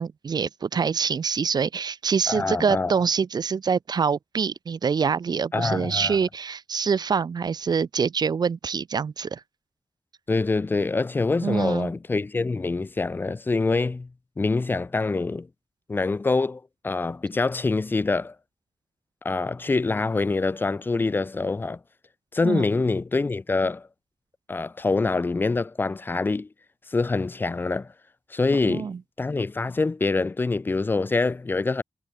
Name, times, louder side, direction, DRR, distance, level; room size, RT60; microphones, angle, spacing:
voice 1, 0.0-9.4 11.4-11.9 22.4-22.7 28.6-29.0, right 6 dB, 50° right, 2.0 m, -25 dB
voice 2, 2.3-2.9 5.5-6.2 10.3-14.1 14.4-15.5 15.9-18.3 19.2-21.8 22.3-23.9 24.5-26.5 26.9-27.9 28.3-31.8, left 3 dB, 25° left, 0.8 m, -25 dB
wide cardioid pair, 170°, 9 cm